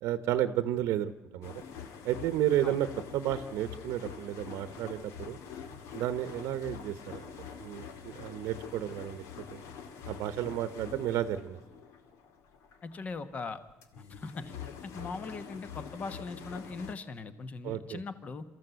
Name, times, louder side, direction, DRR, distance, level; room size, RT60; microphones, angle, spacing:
voice 1, 0.0-1.6 2.0-2.9 3.1-5.4 5.9-7.3 7.6-9.2 9.5-9.6 10.1-11.6 17.6-18.0, right 12 dB, 75° right, 13 dB, 0.9 m, -32 dB
sound 1, 1.4-13.4 13.7-16.9, left 7 dB, 70° left, 2.0 m, -45 dB
voice 2, 12.8-13.6 14.0-14.5 14.8-18.4, left 4 dB, 30° left, 13 dB, 1.1 m, -40 dB
27.5 x 14.0 x 8.1 m, 1.1 s
cardioid pair, 150°, 5 cm